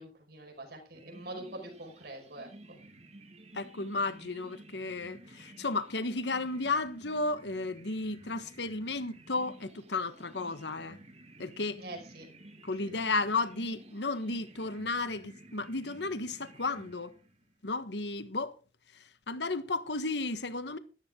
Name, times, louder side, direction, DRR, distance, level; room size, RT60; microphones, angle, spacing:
voice 1, 0.0-2.5 11.8-12.3, right 1 dB, 60° right, 5.6 m, -44 dB
sound 1, 0.9-17.5, right 1 dB, 40° right, 2.3 m, -53 dB
voice 2, 3.5-11.0 11.4-11.8 12.6-17.1 17.6-18.6 18.9-20.8, left 3 dB, 70° left, 1.4 m, -33 dB
14.0 x 13.5 x 3.8 m
head